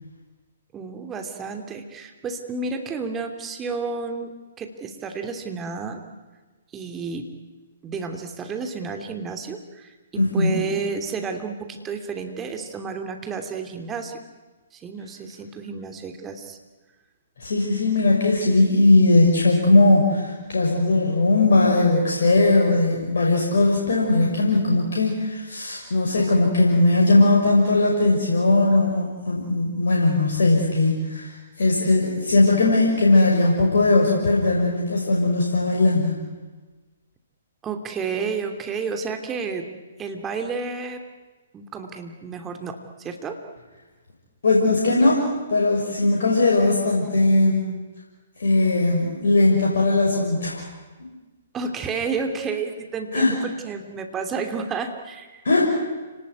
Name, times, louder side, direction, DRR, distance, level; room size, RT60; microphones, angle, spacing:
voice 1, 0.7-6.0 6.7-7.3 7.8-14.2 14.7-16.6 37.6-39.7 40.0-41.0 41.5-43.4 51.5-55.5, right 5 dB, 15° right, 5 dB, 2.9 m, -31 dB
voice 2, 10.1-10.6 17.4-36.2 44.4-47.6 48.4-50.6 53.1-53.3 55.4-55.6, left 2 dB, 65° left, -2 dB, 6.1 m, -19 dB
29.5 x 19.5 x 9.7 m, 1.3 s
figure-of-eight pair, 125°, 0 cm